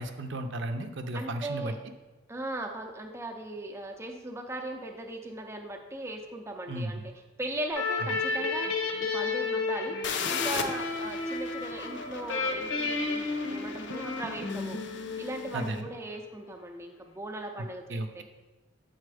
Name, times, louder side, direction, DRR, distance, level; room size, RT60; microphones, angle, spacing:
voice 1, 0.0-1.7 6.7-6.9 15.5-15.9 17.9-18.2, right 1 dB, 60° right, 7 dB, 0.6 m, -34 dB
voice 2, 1.1-1.8 2.3-10.0 10.3-13.2 13.5-14.8 15.2-18.2, right 1 dB, 15° right, 2 dB, 0.5 m, -38 dB
sound 1, 7.7-16.2, left 3 dB, 90° left, 1.1 m, -32 dB
sound 2, 10.0-15.7, left 6 dB, 60° left, 0.6 m, -38 dB
7.6 x 4.2 x 4.8 m, 1.1 s
head